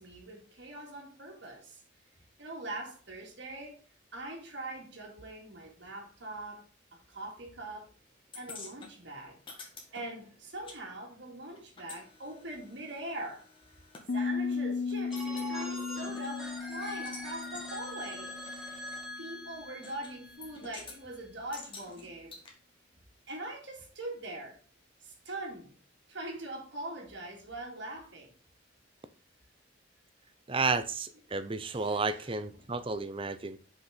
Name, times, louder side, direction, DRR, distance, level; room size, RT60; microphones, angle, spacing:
voice 1, 0.0-1.8 2.4-3.8 4.1-7.9 8.3-9.4 9.9-13.5 14.1-22.4 23.3-24.6 25.0-25.8 26.1-28.3 30.5-30.7 31.6-32.4 32.7-32.8, right 1 dB, 65° right, 2.4 m, -42 dB
sound 1, 8.3-10.8 11.0-14.1 14.5-14.6 14.9-15.5 16.0-17.3 17.5-17.7 18.4-18.5 19.8-20.1 20.4-21.0 21.5-22.5, left 3 dB, 25° left, 1.8 m, -49 dB
Piano, 14.1-19.7, left 5 dB, 55° left, 0.5 m, -36 dB
Telephone, 15.1-20.9, left 1 dB, ahead, 1.6 m, -43 dB
voice 2, 30.5-33.6, right 4 dB, 30° right, 0.6 m, -32 dB
6.4 x 5.5 x 5.0 m
head